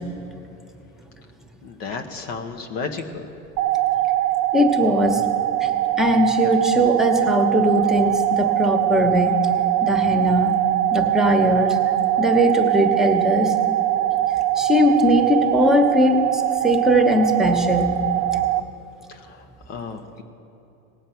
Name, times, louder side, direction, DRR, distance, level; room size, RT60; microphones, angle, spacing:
voice 1, 1.6-3.3 19.1-20.2, left 4 dB, 90° left, 4 dB, 1.2 m, -33 dB
sound 1, 3.6-18.6, right 14 dB, 55° right, 0.4 m, -22 dB
voice 2, 4.5-5.2 5.6-5.7 6.0-9.4 9.8-10.5 10.9-11.8 12.2-13.5 14.6-17.9 18.3-18.4, equal, ahead, 3 dB, 1.1 m, -20 dB
18.5 x 7.7 x 5.7 m, 2.9 s
supercardioid pair, 110°, 37 cm